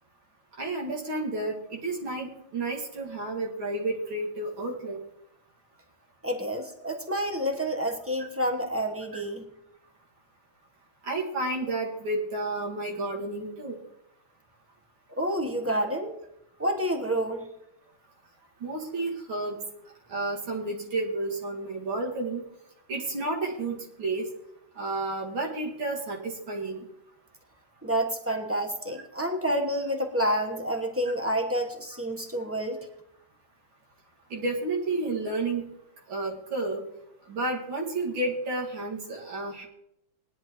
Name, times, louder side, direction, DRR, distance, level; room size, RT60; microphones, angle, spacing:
voice 1, 0.6-5.0 9.1-9.2 11.0-13.8 18.6-19.6 20.1-22.4 22.9-24.3 24.8-26.8 28.3-28.4 34.3-35.6 36.1-36.8 37.3-39.7, right 2 dB, 80° right, -2 dB, 3.0 m, -31 dB
voice 2, 6.2-9.4 15.2-16.1 16.6-17.4 27.8-32.8, equal, 10° right, 3 dB, 0.7 m, -28 dB
19.0 x 10.5 x 3.1 m, 0.80 s
omnidirectional pair, 2.1 m